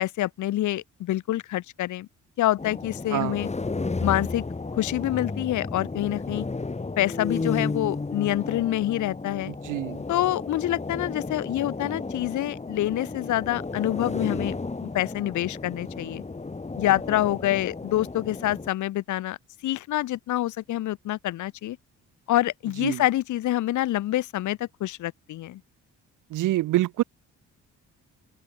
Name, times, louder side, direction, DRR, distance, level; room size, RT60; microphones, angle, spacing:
voice 1, 0.0-2.1 2.4-3.5 4.0-4.4 4.8-6.4 7.0-9.5 10.1-14.6 14.8-16.2 16.8-19.4 19.6-21.8 22.3-25.6, left 14 dB, 75° left, 1.2 m, -26 dB
sound 1, 2.6-18.7, left 3 dB, 20° left, 4.4 m, -33 dB
voice 2, 9.4-10.0 22.8-23.0 26.3-27.0, right 16 dB, 85° right, 2.6 m, -26 dB
open air
cardioid pair, 90°, 30 cm